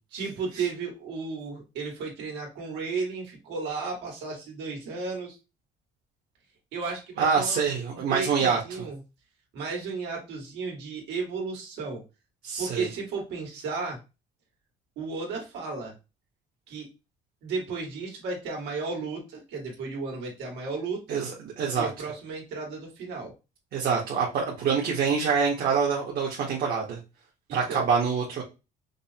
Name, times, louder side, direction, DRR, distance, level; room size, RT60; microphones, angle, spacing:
voice 1, 0.1-5.3 6.7-7.6 7.9-9.0 9.5-12.0 12.6-14.0 14.9-15.9 16.7-16.9 17.4-21.2 21.8-23.3 27.5-27.9, right 4 dB, 90° right, 0 dB, 1.8 m, -34 dB
voice 2, 7.2-8.9 12.4-12.9 21.1-21.9 23.7-27.0 27.5-28.4, right 6 dB, 65° right, -2 dB, 1.1 m, -26 dB
5.2 x 2.1 x 2.8 m, 0.27 s
cardioid pair, 110°, 17 cm